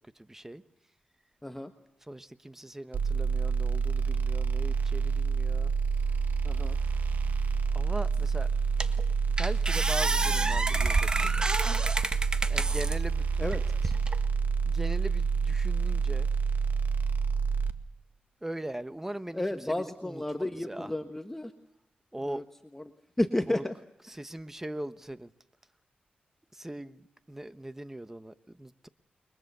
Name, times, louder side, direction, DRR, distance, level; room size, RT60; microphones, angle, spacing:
voice 1, 0.3-0.6 2.1-5.7 7.7-8.5 9.4-11.6 12.5-13.3 14.7-16.3 18.4-20.9 22.1-22.4 23.5-23.6 24.1-25.3 26.5-28.9, right 1 dB, 10° right, 12 dB, 1.2 m, -40 dB
sound 1, 2.9-17.7, right 5 dB, 65° right, 1.9 m, -28 dB
voice 2, 6.4-6.8 13.4-13.9 19.3-21.5 22.2-22.4 22.7-22.9 23.2-23.7 24.1-24.2, left 1 dB, 10° left, 6 dB, 1.4 m, -32 dB
sound 2, 8.1-8.2 8.8-9.0 9.4-13.0 13.5-14.2, right 2 dB, 25° right, 1.5 m, -30 dB
29.5 x 23.0 x 6.9 m, 0.80 s
wide cardioid pair, 100°, 3 cm